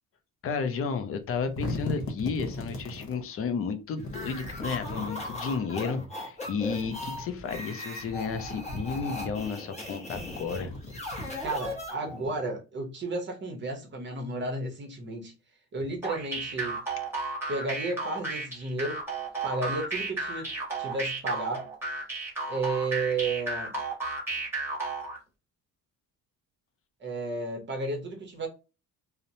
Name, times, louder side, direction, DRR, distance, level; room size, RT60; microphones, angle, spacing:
voice 1, 0.4-10.7, left 5 dB, 35° left, 0.4 m, -32 dB
sound 1, 1.2-3.2 4.0-5.6 6.5-7.6 8.0-9.5 10.0-11.8, left 1 dB, 65° left, 0.9 m, -38 dB
sound 2, 4.1-12.3, left 1 dB, 15° left, 0.8 m, -38 dB
voice 2, 11.4-15.3 15.7-16.8 17.5-19.0 19.4-20.5 20.8-21.6 22.5-23.8 27.0-28.5, right 3 dB, 30° right, 0.7 m, -32 dB
sound 3, 16.0-25.2, right 3 dB, 5° right, 1.1 m, -33 dB
2.8 x 2.0 x 2.6 m
cardioid pair, 155°, 39 cm